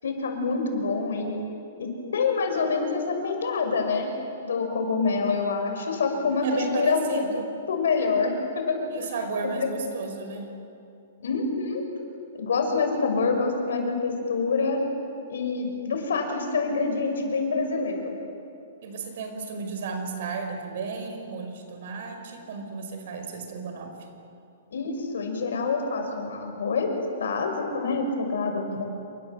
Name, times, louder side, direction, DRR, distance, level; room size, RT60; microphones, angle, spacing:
voice 1, 0.0-1.4 1.8-4.1 4.5-6.4 6.7-7.2 7.7-8.9 9.4-9.7 11.2-11.8 12.3-14.8 15.3-18.1 24.7-26.9 27.2-28.8, left 4 dB, 85° left, 4 dB, 6.4 m, -26 dB
voice 2, 6.4-7.5 8.9-10.5 18.8-23.9 28.6-28.8, right 4 dB, 50° right, 5 dB, 5.3 m, -34 dB
28.5 x 24.5 x 8.1 m, 2.6 s
hypercardioid pair, 175°, 0 cm